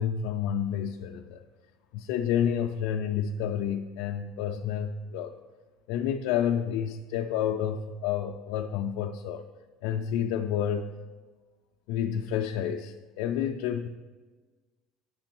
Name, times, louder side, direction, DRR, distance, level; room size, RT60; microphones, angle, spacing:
voice 1, 0.0-1.4 1.9-5.3 5.9-9.4 9.8-10.9 11.9-13.9, left 9 dB, 75° left, 3 dB, 0.3 m, -29 dB
8.5 x 5.9 x 4.5 m, 1.3 s
cardioid pair, 170°, 0 cm